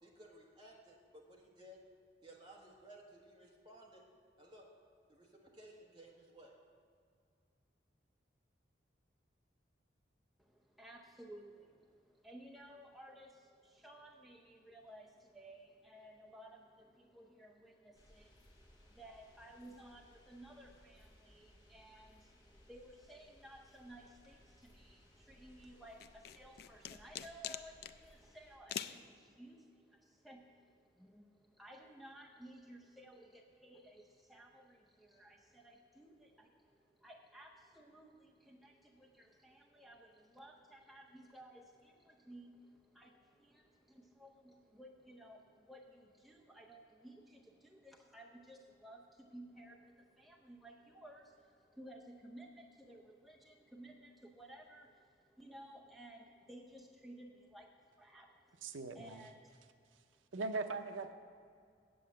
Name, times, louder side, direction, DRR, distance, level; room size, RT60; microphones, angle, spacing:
voice 1, 0.0-1.8 2.2-4.0 4.4-4.6 5.1-6.6, right 1 dB, 25° right, -3 dB, 1.5 m, -58 dB
voice 2, 10.4-59.9 60.2-60.3, right 1 dB, ahead, -1 dB, 0.6 m, -57 dB
sound 1, 17.9-28.6, left 1 dB, 20° left, 1.7 m, -65 dB
sound 2, 26.0-28.0 28.7-29.0, left 10 dB, 55° left, 0.3 m, -43 dB
voice 3, 58.6-59.2 60.3-61.1, right 3 dB, 90° right, 8 dB, 0.6 m, -40 dB
8.3 x 7.9 x 7.5 m, 2.2 s
head